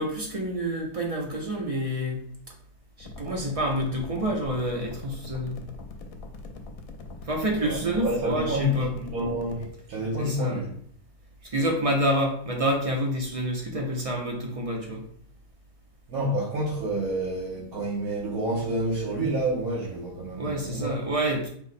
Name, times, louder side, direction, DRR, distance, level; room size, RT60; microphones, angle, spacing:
voice 1, 0.0-2.2 3.0-5.6 7.2-8.9 10.2-10.7 11.4-15.0 20.4-21.5, equal, 45° right, -1 dB, 0.4 m, -28 dB
sound 1, 3.0-9.7, left 3 dB, 75° left, 1.0 m, -42 dB
voice 2, 7.6-10.7 16.1-20.9, right 1 dB, 85° right, -6 dB, 1.4 m, -29 dB
4.6 x 2.0 x 4.0 m, 0.63 s
omnidirectional pair, 1.5 m